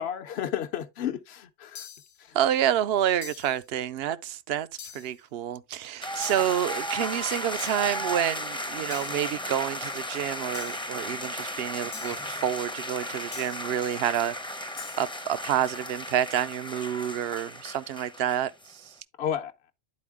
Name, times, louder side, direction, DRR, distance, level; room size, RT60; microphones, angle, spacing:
voice 1, 0.0-1.9 2.2-2.3 19.2-19.5, left 9 dB, 65° left, 1.0 m, -32 dB
sound 1, 1.8-2.2 3.2-3.6 4.8-5.2 6.2-6.6 7.6-8.0 8.9-9.3 10.5-10.9 11.9-12.3 13.3-13.7 14.8-15.1, left 8 dB, 50° left, 0.7 m, -44 dB
voice 2, 2.3-4.7 4.9-18.9, right 10 dB, 65° right, 0.8 m, -29 dB
sound 2, 6.0-18.7, equal, 5° left, 0.6 m, -35 dB
10.5 x 4.4 x 3.4 m
omnidirectional pair, 1.2 m